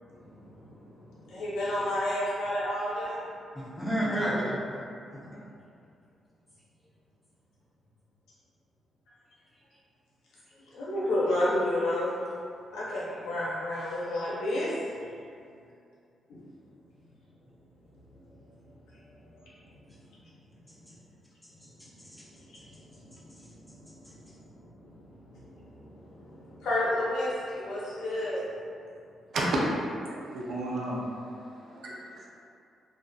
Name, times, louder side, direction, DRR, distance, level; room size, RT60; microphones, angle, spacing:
voice 1, 0.1-3.2 10.7-12.1 12.7-14.7 16.3-16.4 18.3-18.4 18.9-19.0 19.3-19.8 22.5-22.6 23.0-28.4, left 1 dB, 85° left, -8 dB, 0.7 m, -32 dB
voice 2, 3.5-4.8 5.1-5.4 21.4-22.3 22.5-23.5 24.0-24.1, equal, ahead, -8 dB, 0.7 m, -34 dB
voice 3, 29.8-31.0 31.5-32.3, right 1 dB, 60° right, -4 dB, 0.5 m, -34 dB
2.5 x 2.4 x 2.3 m, 2.4 s
cardioid pair, 85°, 0 cm